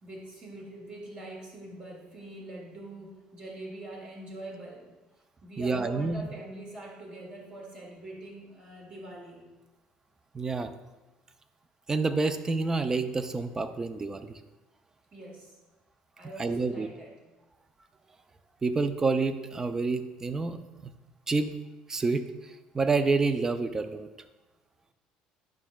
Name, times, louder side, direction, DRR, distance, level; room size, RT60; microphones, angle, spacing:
voice 1, 0.0-4.9 5.4-9.5 15.1-15.6 16.2-17.1, right 1 dB, 40° right, -2 dB, 2.0 m, -43 dB
voice 2, 5.6-6.3 10.3-10.7 11.9-14.4 16.4-16.9 18.6-20.6 20.8-20.9 21.3-21.6 21.9-22.3 22.7-24.1, right 3 dB, 20° right, 10 dB, 0.4 m, -28 dB
9.5 x 6.1 x 2.3 m, 1.1 s
cardioid pair, 115°, 3 cm